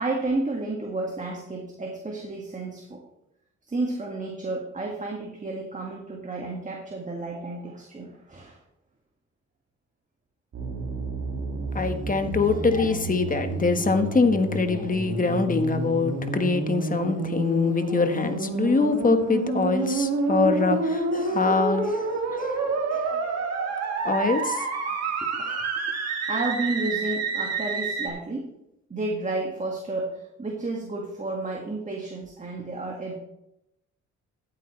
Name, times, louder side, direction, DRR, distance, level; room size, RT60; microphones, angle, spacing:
voice 1, 0.0-3.0 3.7-8.6 25.4-25.5 26.3-28.5 28.9-33.2, right 2 dB, 25° right, -1 dB, 2.0 m, -31 dB
sound 1, 10.5-28.1, right 3 dB, 55° right, 2.4 m, -29 dB
voice 2, 11.7-23.2 24.0-24.6, left 4 dB, 25° left, 7 dB, 1.3 m, -24 dB
14.5 x 8.6 x 3.3 m, 0.83 s
cardioid pair, 90°, 30 cm